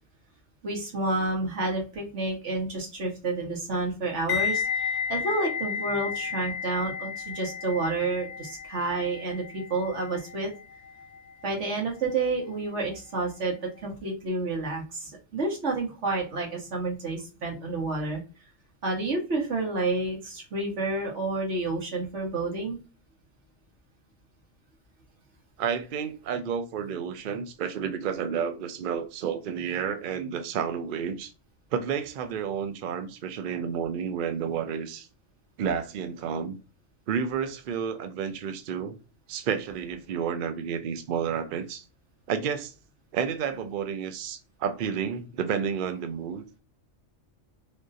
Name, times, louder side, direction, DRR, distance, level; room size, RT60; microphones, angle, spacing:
voice 1, 0.6-10.5 11.4-13.6 13.8-18.2 18.8-22.8, right 3 dB, 60° right, 1.5 m, -30 dB
sound 1, 4.3-13.3 13.5-13.8, left 7 dB, 80° left, 1.0 m, -33 dB
voice 2, 25.6-31.3 31.7-35.1 35.6-36.6 37.1-39.0 39.3-41.8 42.3-42.7 43.1-46.4, right 7 dB, 75° right, 0.4 m, -31 dB
3.6 x 2.6 x 2.5 m
omnidirectional pair, 1.4 m